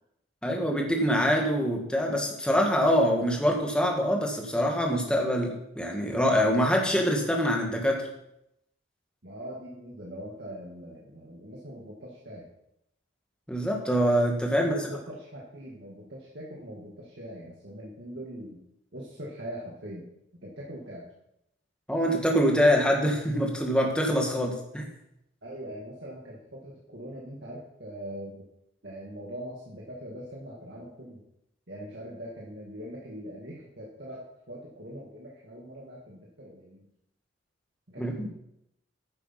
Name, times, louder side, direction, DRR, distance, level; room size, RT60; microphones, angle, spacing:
voice 1, 0.4-8.1 13.5-14.7 21.9-24.9 38.0-38.3, equal, 5° left, 0 dB, 1.7 m, -25 dB
voice 2, 9.2-12.5 14.6-18.6 18.9-20.1 20.4-21.1 25.4-28.4 28.8-31.2 31.7-36.9 37.9-38.3, equal, 60° right, -4 dB, 2.0 m, -42 dB
10.0 x 8.4 x 5.8 m, 0.81 s
head